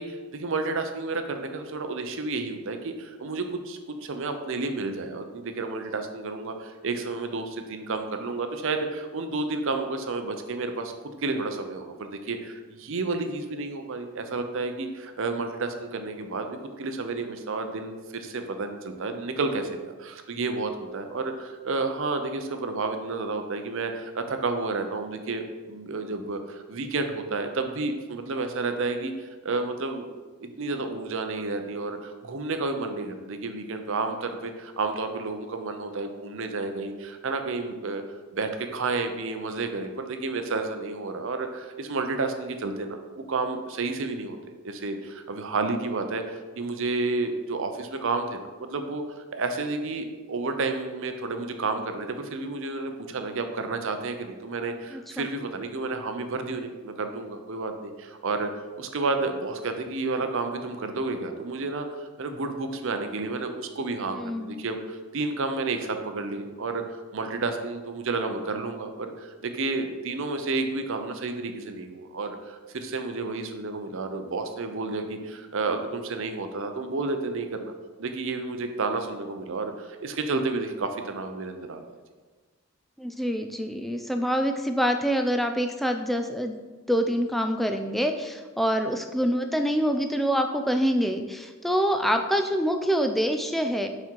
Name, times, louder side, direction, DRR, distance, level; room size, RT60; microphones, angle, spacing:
voice 1, 0.0-30.1 30.4-58.5 58.8-77.7 78.0-81.9, right 3 dB, 60° right, 6 dB, 0.6 m, -31 dB
voice 2, 54.9-55.3 64.1-64.7 83.0-86.5 86.9-93.9, equal, ahead, 5 dB, 0.3 m, -26 dB
5.9 x 4.4 x 4.5 m, 1.3 s
head